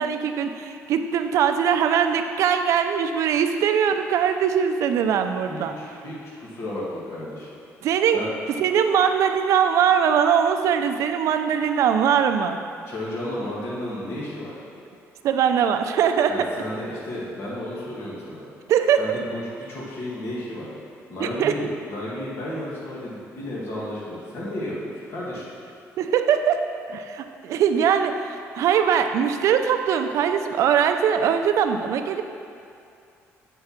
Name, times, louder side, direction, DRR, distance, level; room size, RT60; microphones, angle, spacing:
voice 1, 0.0-5.7 7.8-8.2 8.6-12.6 15.2-16.5 18.7-19.0 21.2-21.5 26.0-26.6 26.9-32.2, right 8 dB, 70° right, 7 dB, 0.5 m, -21 dB
voice 2, 5.5-7.5 8.1-8.3 12.9-14.6 16.3-18.4 19.0-19.4 19.7-20.7 21.1-25.4, left 1 dB, 55° left, -7 dB, 1.9 m, -33 dB
7.7 x 4.6 x 5.9 m, 2.5 s
cardioid pair, 130°, 5 cm